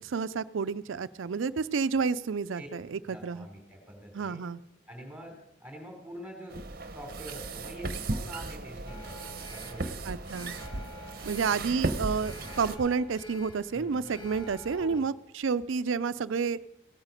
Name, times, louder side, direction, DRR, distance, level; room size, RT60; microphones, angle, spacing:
voice 1, 0.0-3.5 4.1-4.6 10.1-10.5 11.2-16.6, right 5 dB, 85° right, 16 dB, 0.5 m, -30 dB
voice 2, 3.0-4.4 4.9-6.6 6.9-9.2 9.5-10.3 13.7-14.1 14.8-15.1, equal, 5° right, 1 dB, 3.3 m, -45 dB
sound 1, 6.5-12.8, right 2 dB, 50° right, 0.9 m, -36 dB
Alarm, 8.8-15.0, left 2 dB, 25° left, 1.3 m, -49 dB
17.0 x 9.0 x 5.2 m, 0.91 s
head